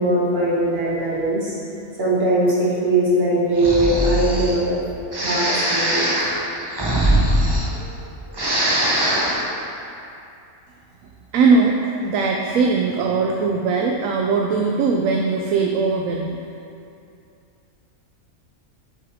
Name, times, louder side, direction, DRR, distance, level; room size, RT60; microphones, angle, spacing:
voice 1, 0.0-1.5 2.0-4.8 5.2-6.3, right 1 dB, 45° right, -7 dB, 1.9 m, -20 dB
Breathing, 3.5-4.6 5.1-8.0 8.3-9.5, right 1 dB, 20° right, 0.7 m, -21 dB
voice 2, 11.3-16.4, right 4 dB, 70° right, 1 dB, 0.9 m, -20 dB
7.8 x 6.6 x 3.6 m, 2.6 s
omnidirectional pair, 1.5 m